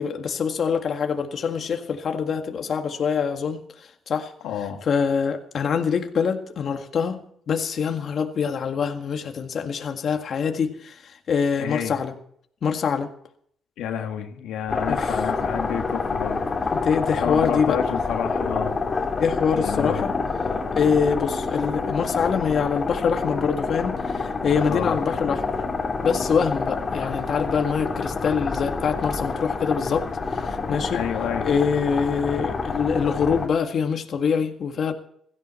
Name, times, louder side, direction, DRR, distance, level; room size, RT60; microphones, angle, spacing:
voice 1, 0.0-4.3 4.8-12.1 12.6-13.1 14.9-15.3 16.7-17.8 19.2-20.1 20.7-25.4 26.0-31.0 31.4-34.9, left 6 dB, 55° left, 5 dB, 1.8 m, -25 dB
voice 2, 4.4-4.8 11.6-12.0 13.8-16.4 17.2-18.8 19.5-20.1 24.7-25.0 30.9-31.5, left 9 dB, 90° left, 4 dB, 1.8 m, -30 dB
sound 1, 14.7-33.5, left 4 dB, 35° left, 2.7 m, -27 dB
17.0 x 14.5 x 4.4 m, 0.64 s
cardioid pair, 90°, 0 cm